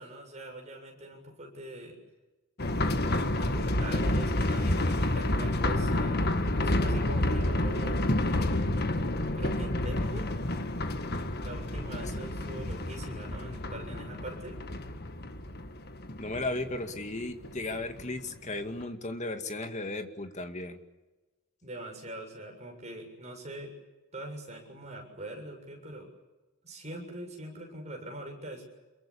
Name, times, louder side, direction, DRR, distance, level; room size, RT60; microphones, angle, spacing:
voice 1, 0.0-2.0 3.1-8.7 9.4-10.4 11.4-14.6 21.6-23.7 24.1-26.1 26.6-28.7, right 1 dB, 35° right, 2 dB, 7.1 m, -43 dB
sound 1, 2.6-18.1 18.3-18.4 18.8-18.9, left 1 dB, 50° left, 1.8 m, -29 dB
voice 2, 16.2-20.8, left 2 dB, 35° left, 6 dB, 2.2 m, -35 dB
28.0 x 23.0 x 8.7 m, 1.1 s
head